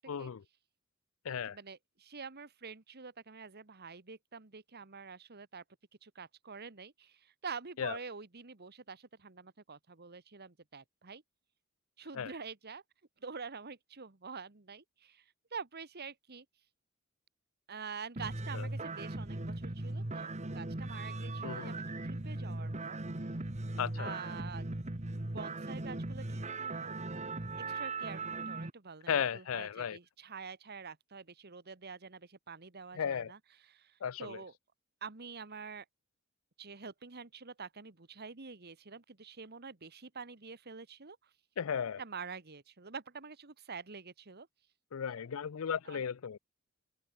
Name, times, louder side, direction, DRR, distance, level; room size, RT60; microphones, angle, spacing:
voice 1, 0.1-0.4 1.2-1.6 7.8-8.0 12.2-12.3 18.5-18.7 21.4-21.7 23.8-24.1 29.1-30.0 33.0-33.3 34.0-34.4 41.6-42.0 44.9-46.4, left 7 dB, 70° left, 0.5 m, -35 dB
voice 2, 1.5-5.6 6.0-11.2 12.0-12.8 13.2-15.2 15.5-16.4 17.7-23.0 24.0-24.7 25.3-27.0 27.6-34.5 35.0-35.8 36.6-41.2 42.0-44.5 45.8-46.0, right 5 dB, 50° right, 1.6 m, -47 dB
sound 1, 18.2-28.7, right 2 dB, 35° right, 1.4 m, -39 dB
head